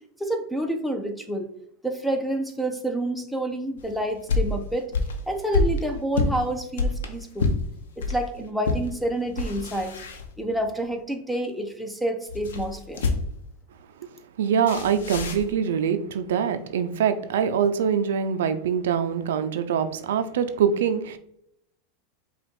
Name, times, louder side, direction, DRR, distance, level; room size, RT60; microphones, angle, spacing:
voice 1, 0.2-1.5 1.8-4.9 5.3-7.5 8.0-10.0 10.4-13.1, right 1 dB, ahead, 5 dB, 0.7 m, -28 dB
sound 1, 3.8-8.2 8.6-8.9 9.2-10.7 12.3-13.5 14.7-15.5, left 4 dB, 85° left, 0.8 m, -27 dB
voice 2, 14.4-21.2, right 7 dB, 80° right, 10 dB, 0.4 m, -24 dB
5.0 x 2.4 x 4.3 m, 0.72 s
supercardioid pair, 125°, 0 cm